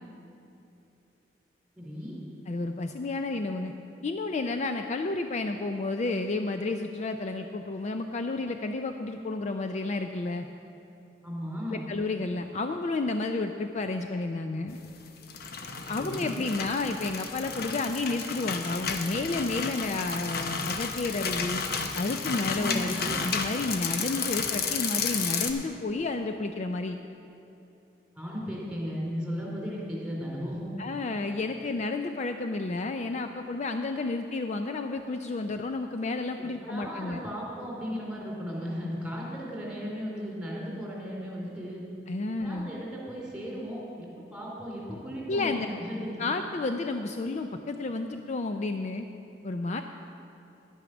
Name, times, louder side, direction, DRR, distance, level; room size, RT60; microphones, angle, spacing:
voice 1, 1.8-2.2 11.2-11.9 15.8-16.3 22.5-23.2 28.1-30.7 36.4-41.8 42.4-46.2, equal, 5° right, -4 dB, 2.8 m, -36 dB
voice 2, 2.5-3.7 4.0-10.5 11.7-14.8 15.9-21.6 21.9-27.0 30.8-37.2 42.1-42.7 45.3-45.7 46.2-49.1 49.4-49.8, left 3 dB, 40° left, 6 dB, 0.4 m, -31 dB
sound 1, 15.1-25.5, left 5 dB, 60° left, 0.8 m, -32 dB
10.5 x 9.1 x 6.1 m, 2.8 s
head